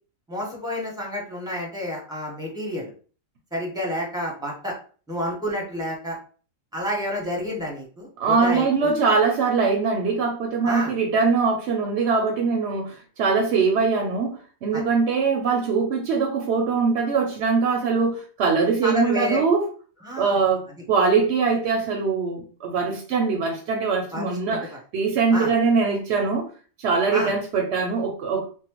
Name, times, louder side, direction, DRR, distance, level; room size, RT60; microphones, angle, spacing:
voice 1, 0.3-2.9 3.5-4.8 5.1-6.2 6.7-8.9 10.7-10.9 14.7-14.8 18.8-19.4 20.0-20.4 24.1-24.8 25.3-25.5 27.1-27.3, equal, 5° right, 0.8 m, -29 dB
voice 2, 8.2-19.7 20.2-26.5 26.8-28.5, right 4 dB, 65° right, 0.8 m, -22 dB
3.6 x 2.1 x 2.9 m
omnidirectional pair, 1.4 m